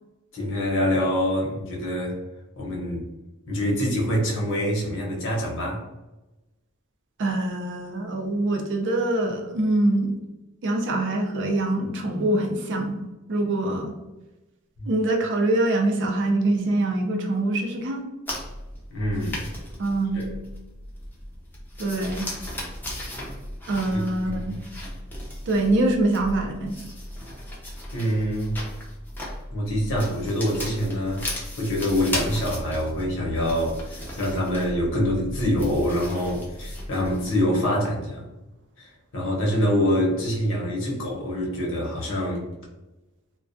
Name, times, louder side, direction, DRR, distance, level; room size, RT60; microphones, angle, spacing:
voice 1, 0.3-2.2 2.6-3.0 3.5-5.8 14.8-14.9 18.9-19.4 20.1-20.3 23.9-24.6 27.9-28.6 29.5-38.2 38.8-42.5, equal, 60° left, -2 dB, 0.8 m, -25 dB
voice 2, 7.2-10.1 10.6-13.0 13.3-13.9 14.9-18.0 19.8-20.2 21.8-22.3 23.7-24.6 25.5-26.8, right 2 dB, 55° right, 2 dB, 0.5 m, -24 dB
sound 1, 18.3-37.4, left 1 dB, 10° left, 0.5 m, -36 dB
2.2 x 2.2 x 2.5 m, 1.0 s
head